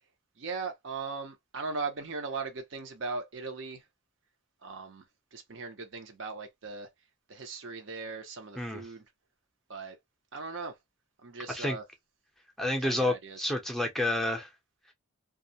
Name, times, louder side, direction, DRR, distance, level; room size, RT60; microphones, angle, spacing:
voice 1, 0.4-3.8 4.6-5.0 5.3-6.9 7.3-9.0 9.7-10.0 10.3-10.7 11.2-11.8 12.8-13.5, right 4 dB, 60° right, 0.7 m, -38 dB
voice 2, 12.6-14.5, left 1 dB, ahead, 0.6 m, -29 dB
2.3 x 2.1 x 2.6 m
head